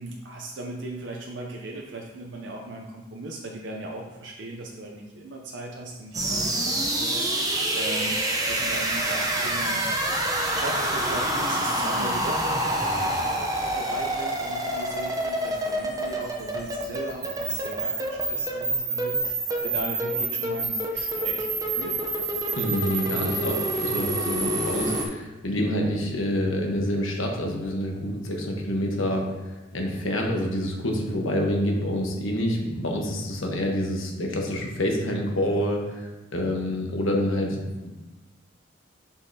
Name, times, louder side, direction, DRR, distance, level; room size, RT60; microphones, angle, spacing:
voice 1, 0.0-22.0, right 1 dB, 65° right, 0 dB, 0.6 m, -38 dB
sound 1, 6.1-25.1, right 1 dB, 15° right, 0.7 m, -27 dB
voice 2, 22.5-29.3 29.7-37.9, equal, 90° left, 1 dB, 1.2 m, -27 dB
6.8 x 5.4 x 2.8 m, 1.1 s
head